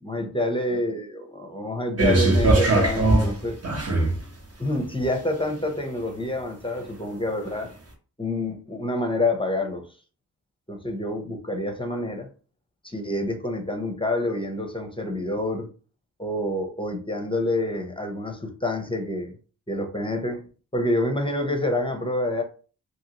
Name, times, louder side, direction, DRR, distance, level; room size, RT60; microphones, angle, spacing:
voice 1, 0.0-3.6 4.6-7.7 8.2-9.8 10.7-12.3 12.8-15.7 16.2-19.3 19.7-20.5 20.7-22.4, left 1 dB, 15° left, 0.7 m, -27 dB
sound 1, 2.0-4.3 5.0-5.1, right 2 dB, 35° right, 0.9 m, -20 dB
2.9 x 2.6 x 2.9 m
cardioid pair, 65°, 41 cm